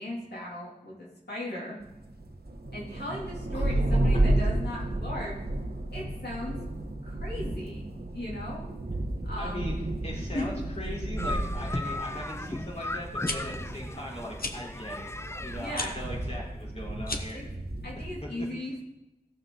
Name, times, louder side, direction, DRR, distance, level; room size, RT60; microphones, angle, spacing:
voice 1, 0.0-1.8 2.7-5.4 5.9-6.6 7.0-7.8 8.1-8.7 9.2-9.6 10.1-10.5 15.6-16.1 17.3-17.4 17.8-18.8, left 1 dB, 80° left, -6 dB, 2.8 m, -37 dB
sound 1, 1.8-18.2, right 1 dB, 70° right, 1.1 m, -32 dB
voice 2, 9.4-9.7 10.0-15.1 15.4-17.4 17.9-18.3, left 1 dB, 40° left, -4 dB, 3.7 m, -40 dB
sound 2, 11.2-16.4, left 2 dB, 15° left, 0.4 m, -37 dB
sound 3, 13.2-13.4 14.4-14.6 15.7-15.9 17.0-17.4, left 3 dB, 65° left, 1.0 m, -33 dB
16.5 x 6.9 x 3.9 m, 0.94 s
wide cardioid pair, 45°, 17 cm